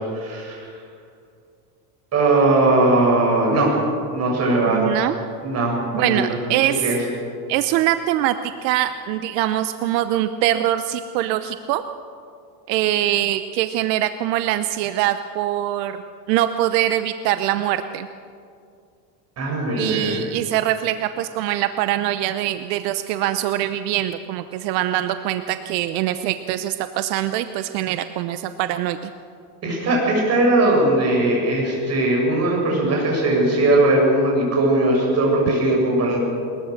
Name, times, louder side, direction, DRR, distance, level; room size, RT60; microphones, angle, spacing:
voice 1, 0.1-0.6 2.1-3.7 4.1-4.8 5.4-6.2 6.8-7.0 19.4-20.2 29.6-36.2, right 2 dB, 30° right, -1 dB, 7.2 m, -19 dB
voice 2, 4.7-5.2 5.9-6.9 7.5-8.3 8.6-11.8 12.7-16.0 16.3-18.1 19.8-29.0, right 13 dB, 80° right, 10 dB, 1.0 m, -23 dB
21.5 x 21.0 x 6.6 m, 2.4 s
cardioid pair, 155°, 49 cm